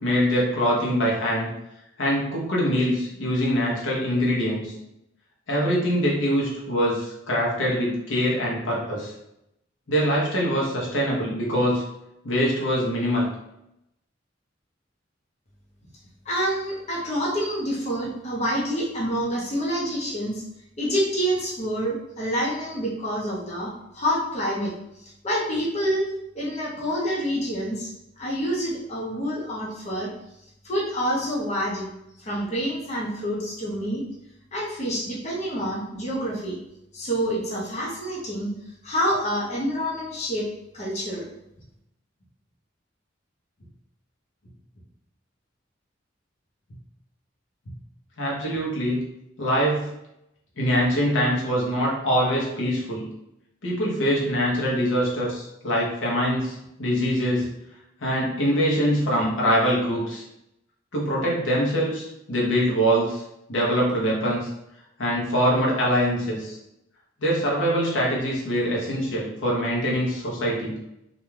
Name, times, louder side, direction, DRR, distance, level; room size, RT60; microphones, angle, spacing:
voice 1, 0.0-1.5 2.0-4.7 5.5-9.1 9.9-11.8 12.2-13.3 48.2-49.0 49.4-49.9 50.6-53.1 53.6-57.5 58.0-60.2 60.9-63.2 63.5-64.5 65.0-66.6 67.2-70.8, equal, 80° left, -4 dB, 0.8 m, -23 dB
voice 2, 16.2-20.4 20.8-26.1 26.3-27.9 28.2-30.1 30.6-31.9 32.2-34.0 34.5-36.6 36.9-38.5 38.8-40.5 40.7-41.3, equal, 35° left, -5 dB, 0.6 m, -27 dB
2.5 x 2.2 x 3.1 m, 0.84 s
head